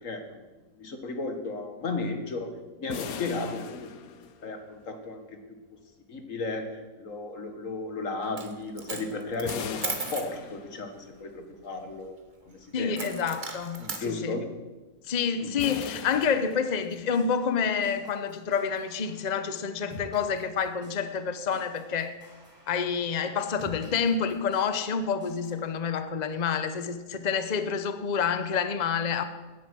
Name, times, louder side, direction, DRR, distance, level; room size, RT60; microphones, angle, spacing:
voice 1, 0.0-0.4 0.8-2.5 2.8-4.0 4.4-5.4 6.1-12.2 12.5-13.1 13.8-14.5 15.4-15.5, left 3 dB, 65° left, 6 dB, 2.0 m, -34 dB
sound 1, 2.9-4.8 9.5-11.1 15.6-17.2, left 7 dB, 80° left, 1.3 m, -40 dB
Coin (dropping), 8.2-8.5 8.8-10.3 12.9-14.0, right 4 dB, 35° right, 1.4 m, -36 dB
voice 2, 12.7-14.4 15.1-22.2 22.7-29.2, left 6 dB, 35° left, 10 dB, 0.8 m, -28 dB
sound 2, 16.9-25.7, equal, 5° right, 5.8 m, -51 dB
17.0 x 10.5 x 6.2 m, 1.2 s
omnidirectional pair, 1.5 m